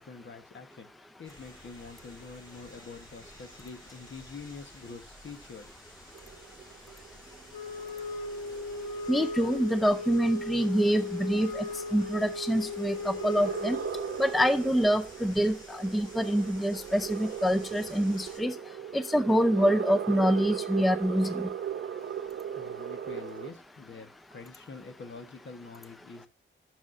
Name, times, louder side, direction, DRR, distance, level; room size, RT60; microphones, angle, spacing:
voice 1, 0.0-5.9 21.8-26.3, left 4 dB, 60° left, 7 dB, 1.1 m, -46 dB
sound 1, 1.2-18.4, equal, 20° left, 2.7 m, -52 dB
sound 2, 6.1-23.5, right 8 dB, 65° right, 0.7 m, -38 dB
Wind instrument woodwind instrument, 7.5-14.3, left 3 dB, 85° left, 1.8 m, -37 dB
voice 2, 9.1-11.6 11.9-13.8 14.2-18.5 18.9-21.5, equal, ahead, 11 dB, 0.4 m, -26 dB
10.5 x 6.2 x 2.5 m, 0.30 s
wide cardioid pair, 115°, 21 cm